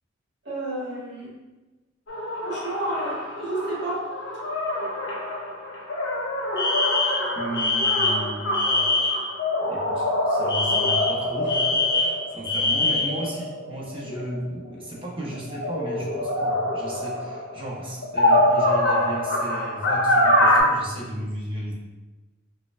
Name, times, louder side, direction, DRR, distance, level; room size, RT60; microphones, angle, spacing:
voice 1, 0.4-1.3 2.4-4.0, right 1 dB, 60° right, -8 dB, 1.4 m, -31 dB
sound 1, 2.1-14.8 15.3-20.6, left 1 dB, 70° left, 0.6 m, -25 dB
Alarm, 6.6-9.3 10.5-13.2, left 3 dB, 25° left, 0.4 m, -24 dB
voice 2, 7.4-9.1 9.6-21.7, right 1 dB, 25° right, -4 dB, 0.7 m, -35 dB
4.4 x 2.4 x 2.3 m, 1.2 s
head